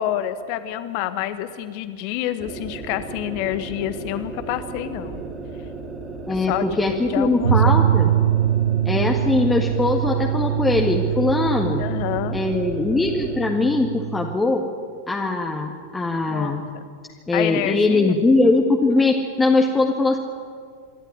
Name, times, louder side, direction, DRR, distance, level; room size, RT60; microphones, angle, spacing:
voice 1, 0.0-5.2 6.5-6.7 7.1-7.9 11.8-12.4 16.3-16.9 17.3-18.2, left 12 dB, 45° left, 11 dB, 1.5 m, -28 dB
sound 1, 2.4-13.4, right 3 dB, 25° right, 3.7 m, -35 dB
voice 2, 6.3-8.1 8.9-11.8 12.3-14.6 15.1-16.7 17.3-20.2, left 3 dB, 10° left, 1 dB, 1.8 m, -21 dB
sound 2, 7.4-14.3, right 11 dB, 65° right, 0.6 m, -23 dB
26.5 x 12.5 x 9.8 m, 2.1 s
figure-of-eight pair, 90°, 0 cm